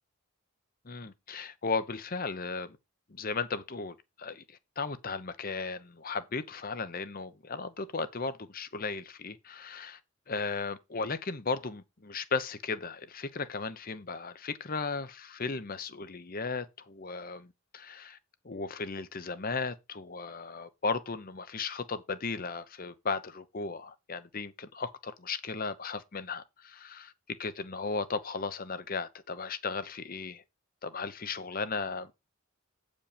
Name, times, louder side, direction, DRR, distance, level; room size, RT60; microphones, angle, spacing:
voice 1, 0.8-2.8 3.1-10.0 10.3-18.2 18.4-27.1 27.4-30.4 30.8-32.1, left 4 dB, 40° left, 0.8 m, -36 dB
8.6 x 5.3 x 5.1 m
head